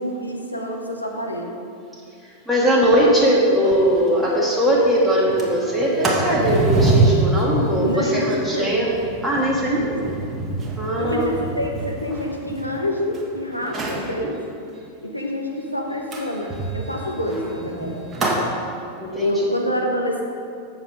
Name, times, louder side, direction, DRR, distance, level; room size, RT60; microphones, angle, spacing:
voice 1, 0.0-1.6 7.8-8.9 9.7-10.2 11.0-14.4 15.0-18.0 19.2-20.2, left 1 dB, 85° left, 1 dB, 0.9 m, -27 dB
voice 2, 2.5-8.9 9.2-10.0 10.7-11.4 14.1-14.2 18.2-18.4 19.0-19.5, equal, ahead, -6 dB, 1.5 m, -20 dB
Sliding door, 3.6-3.7 4.1-4.2 4.5-4.8 5.2-13.2 13.6-14.1 16.1-18.5, right 2 dB, 20° right, 1.3 m, -25 dB
7.4 x 6.4 x 4.9 m, 2.4 s
figure-of-eight pair, 90°, 0 cm